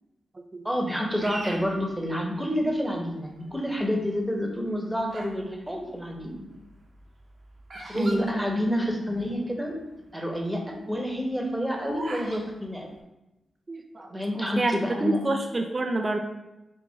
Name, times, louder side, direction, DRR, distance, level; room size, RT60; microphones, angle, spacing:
voice 1, 0.6-6.4 7.9-9.7 10.1-12.9 14.1-15.2, equal, 5° right, 0 dB, 1.1 m, -28 dB
Bird vocalization bird call bird song, 1.2-2.7 3.3-3.8 4.5-5.4 5.7-9.2 9.5-9.6 9.7-10.1 10.5-12.4, right 2 dB, 55° right, 0.9 m, -41 dB
voice 2, 7.9-8.4 13.7-14.7 15.0-16.2, right 2 dB, 35° right, 3 dB, 0.4 m, -28 dB
3.6 x 2.8 x 4.0 m, 0.96 s
supercardioid pair, 45°, 0 cm